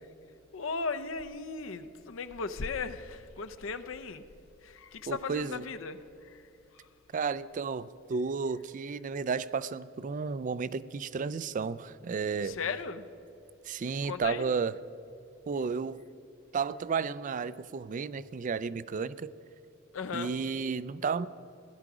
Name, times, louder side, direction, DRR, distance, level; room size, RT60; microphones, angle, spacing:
voice 1, 0.5-4.2 4.6-6.9 12.4-13.1 14.0-14.4 19.9-20.3, left 4 dB, 75° left, 10 dB, 0.6 m, -37 dB
voice 2, 5.1-5.6 7.1-12.6 13.6-14.7 15.5-16.0 16.5-19.3 20.1-21.3, right 5 dB, 40° right, 17 dB, 0.3 m, -32 dB
16.5 x 11.5 x 4.9 m, 2.7 s
head